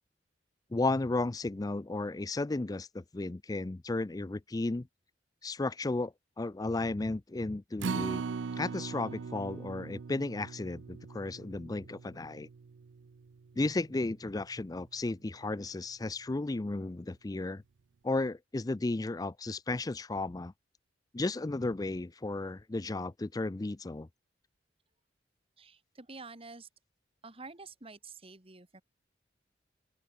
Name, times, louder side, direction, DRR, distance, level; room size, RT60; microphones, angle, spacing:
voice 1, 0.7-4.9 5.4-8.2 8.6-12.5 13.6-17.6 18.0-20.5 21.1-24.1, left 2 dB, 20° left, 0.4 m, -34 dB
Acoustic guitar, 7.8-14.1 14.5-14.6 15.0-15.1, right 5 dB, 85° right, 0.5 m, -40 dB
voice 2, 25.6-26.7 27.2-28.8, right 3 dB, 30° right, 2.3 m, -48 dB
open air
head